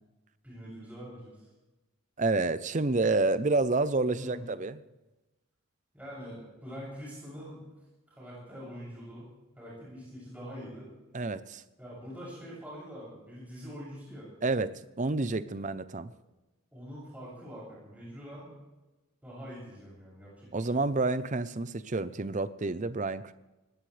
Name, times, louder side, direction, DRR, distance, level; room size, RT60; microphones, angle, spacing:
voice 1, 0.4-1.5 4.2-4.5 5.9-7.6 8.1-10.9 11.8-14.3 15.6-15.7 16.1-16.2 16.7-18.5 19.2-20.8, equal, 5° right, -7 dB, 7.1 m, -44 dB
voice 2, 2.2-4.8 11.1-11.6 14.4-16.1 20.5-23.3, right 3 dB, 35° right, 15 dB, 0.6 m, -29 dB
20.5 x 17.0 x 3.3 m, 1.1 s
head